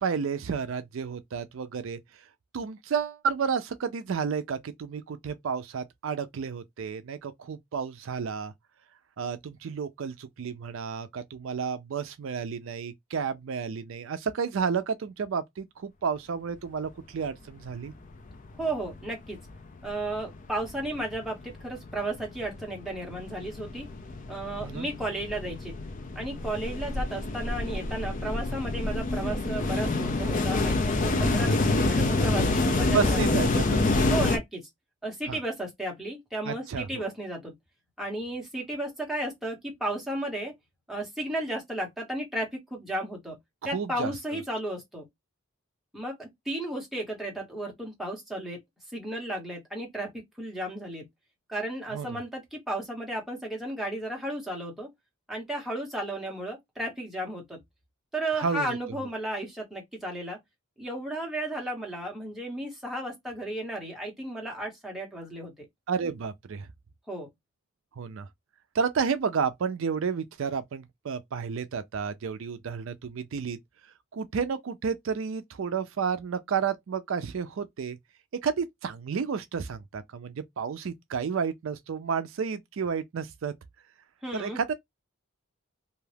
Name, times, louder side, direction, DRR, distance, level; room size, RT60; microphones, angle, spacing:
voice 1, 0.0-2.0 2.5-8.5 9.2-17.9 24.6-24.9 32.9-34.1 35.3-35.4 36.5-37.0 43.6-44.4 51.9-52.2 58.3-58.8 65.9-66.7 68.0-68.3 68.7-73.6 74.1-78.0 78.4-83.5 84.3-84.7, right 6 dB, 65° right, 0.4 m, -31 dB
sound 1, 17.7-17.8 18.1-19.1 19.4-34.4, left 2 dB, 35° left, 0.4 m, -27 dB
voice 2, 18.6-19.4 19.8-23.9 24.3-25.8 26.1-33.3 34.1-34.7 35.0-37.5 38.0-40.5 40.9-43.4 43.6-45.1 45.9-48.6 48.9-51.1 51.5-54.9 55.3-57.6 58.1-60.4 60.8-65.7 67.1-67.3 84.2-84.6, right 1 dB, ahead, 1.0 m, -34 dB
2.6 x 2.3 x 3.2 m
head